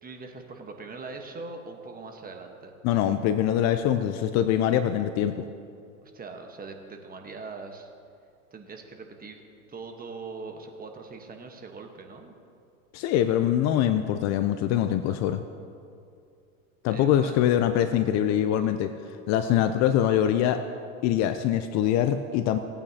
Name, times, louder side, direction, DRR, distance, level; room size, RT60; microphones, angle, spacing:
voice 1, 0.0-2.7 6.0-7.9 8.5-9.4 9.7-12.4 15.1-15.2 16.9-17.4, right 4 dB, 20° right, 4 dB, 1.3 m, -41 dB
voice 2, 2.8-5.5 12.9-15.4 16.8-18.9 19.3-20.6 21.0-22.6, left 10 dB, 40° left, 10 dB, 0.5 m, -23 dB
17.5 x 9.0 x 2.8 m, 2.4 s
hypercardioid pair, 100°, 43 cm